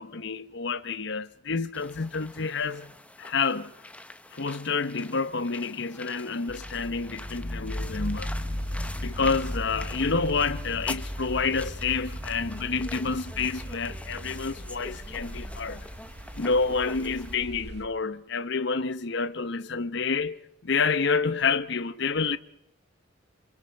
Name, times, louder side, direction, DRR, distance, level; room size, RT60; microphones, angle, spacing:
voice 1, 0.0-2.9 3.2-3.7 4.3-8.3 8.9-15.9 16.3-22.4, left 4 dB, 60° left, 0.9 m, -28 dB
sound 1, 1.7-17.3, left 1 dB, 5° left, 0.9 m, -45 dB
sound 2, 6.5-16.3, left 1 dB, 30° left, 1.3 m, -37 dB
sound 3, 7.8-17.9, right 1 dB, 60° right, 1.9 m, -42 dB
28.0 x 27.5 x 4.6 m
head